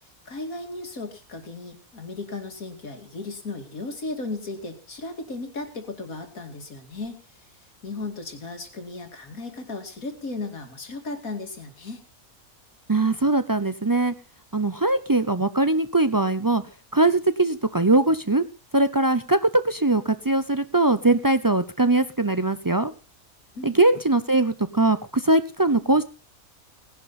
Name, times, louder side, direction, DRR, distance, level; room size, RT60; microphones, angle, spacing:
voice 1, 0.3-7.5 7.8-12.0 23.5-23.8, left 3 dB, 75° left, 5 dB, 3.0 m, -35 dB
voice 2, 12.9-14.1 14.5-16.6 16.9-18.4 18.7-22.9 23.6-26.0, right 2 dB, 35° right, 12 dB, 0.3 m, -21 dB
19.0 x 11.0 x 4.2 m, 0.33 s
omnidirectional pair, 1.5 m